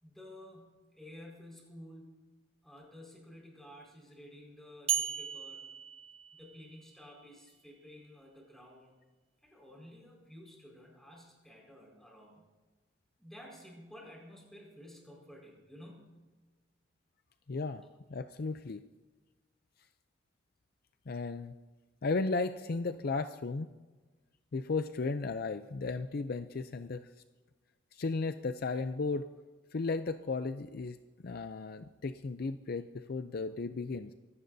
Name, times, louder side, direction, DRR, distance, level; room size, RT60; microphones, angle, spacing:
voice 1, 0.0-2.3 2.6-5.7 6.3-9.0 9.4-12.5 13.2-16.2, left 1 dB, ahead, -2 dB, 4.9 m, -52 dB
sound 1, 4.9-6.9, right 9 dB, 30° right, 0.5 m, -36 dB
voice 2, 17.5-17.8 18.1-18.8 21.1-21.5 22.0-23.7 24.5-27.1 27.9-29.3 29.7-31.0 31.2-34.1, left 3 dB, 50° left, 10 dB, 0.5 m, -35 dB
24.5 x 16.5 x 2.7 m, 1.3 s
head